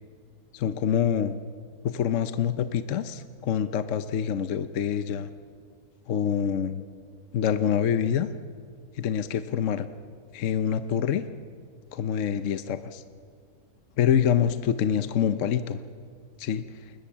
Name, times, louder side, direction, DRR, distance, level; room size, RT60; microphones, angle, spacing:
voice 1, 0.5-1.4 1.8-5.3 6.1-6.8 7.3-8.3 9.0-9.9 10.3-11.2 11.9-13.0 14.0-15.8 16.4-16.6, left 8 dB, 60° left, 11 dB, 1.0 m, -26 dB
28.5 x 20.5 x 7.3 m, 2.1 s
omnidirectional pair, 1.6 m